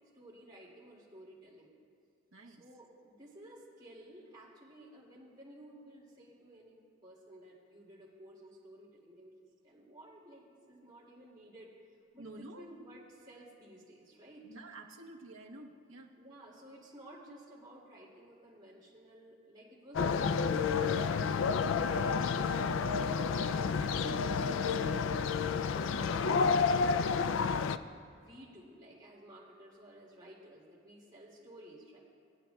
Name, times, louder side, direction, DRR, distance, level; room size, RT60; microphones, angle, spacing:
voice 1, 0.1-1.7 2.4-6.8 7.0-9.3 9.6-11.7 12.1-14.4 16.2-21.5 21.9-23.0 23.3-27.7 28.1-32.0, right 1 dB, 20° right, -6 dB, 2.2 m, -54 dB
voice 2, 2.3-2.6 12.2-12.6 14.4-16.1 21.9-22.3, right 2 dB, 70° right, 3 dB, 0.9 m, -49 dB
sound 1, 19.9-27.8, left 5 dB, 65° left, 0.3 m, -30 dB
19.5 x 8.8 x 2.3 m, 2.4 s
head